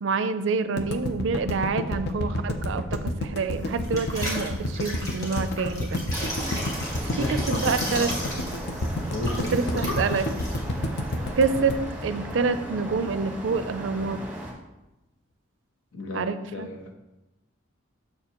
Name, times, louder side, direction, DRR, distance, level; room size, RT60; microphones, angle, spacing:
voice 1, 0.0-6.0 7.2-8.1 9.5-10.3 11.4-14.2 16.1-16.7, right 4 dB, 70° right, 12 dB, 0.4 m, -27 dB
sound 1, 0.8-12.9, left 1 dB, 55° left, 0.6 m, -30 dB
sound 2, 3.5-11.5, equal, 15° left, 1.4 m, -36 dB
sound 3, 6.1-14.5, right 1 dB, 10° right, 1.1 m, -36 dB
voice 2, 7.0-8.4 9.1-10.0 15.9-16.9, left 2 dB, 85° left, 2 dB, 1.0 m, -34 dB
6.8 x 6.7 x 2.9 m, 1.0 s
head